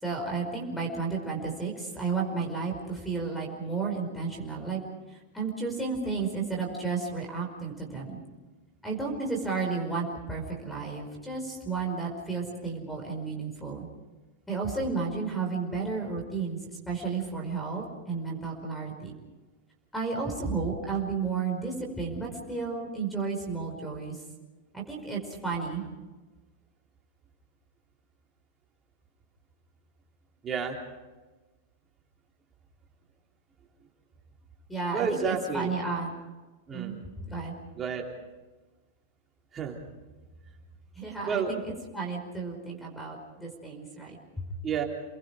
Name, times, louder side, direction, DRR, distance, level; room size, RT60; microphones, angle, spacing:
voice 1, 0.0-4.8 5.3-8.2 8.8-13.9 14.5-16.6 16.9-19.1 19.9-24.1 24.7-25.8 34.7-36.1 36.7-37.0 37.3-37.5 41.0-41.6 41.9-44.5, right 4 dB, 5° left, 3 dB, 5.1 m, -32 dB
voice 2, 30.4-30.8 34.9-35.7 36.7-37.0 37.7-38.1 39.5-39.8 41.3-41.6 44.6-44.8, right 6 dB, 20° right, 0 dB, 3.3 m, -30 dB
29.5 x 21.5 x 5.1 m, 1.2 s
supercardioid pair, 150°, 0 cm